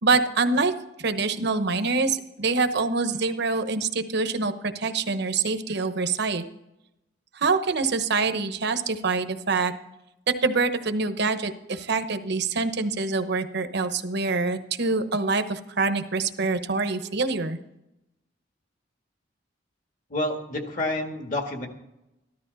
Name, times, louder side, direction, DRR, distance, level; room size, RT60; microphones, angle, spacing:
voice 1, 0.0-0.7 1.0-6.4 7.4-9.7 10.3-17.6, right 4 dB, 65° right, 9 dB, 1.0 m, -25 dB
voice 2, 20.1-21.7, left 1 dB, 45° left, 4 dB, 1.9 m, -29 dB
14.0 x 13.0 x 4.0 m, 0.89 s
head